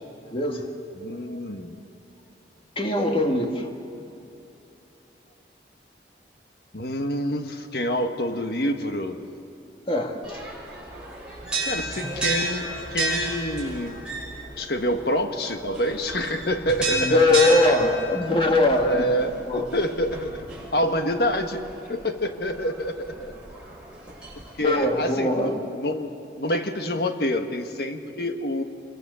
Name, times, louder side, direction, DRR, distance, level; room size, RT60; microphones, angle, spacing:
voice 1, 0.3-0.7 1.3-1.4 2.8-3.7 9.9-10.4 16.9-19.1 19.4-19.7 24.6-25.6, left 2 dB, 30° left, 3 dB, 2.1 m, -22 dB
voice 2, 1.0-1.8 6.7-9.2 11.6-14.0 14.6-17.9 18.8-20.5 20.7-23.3 24.6-26.1 26.4-28.6, equal, 65° left, 6 dB, 1.5 m, -27 dB
sound 1, 10.2-24.7, right 2 dB, 5° right, 5.6 m, -33 dB
27.0 x 22.5 x 7.0 m, 2.8 s
head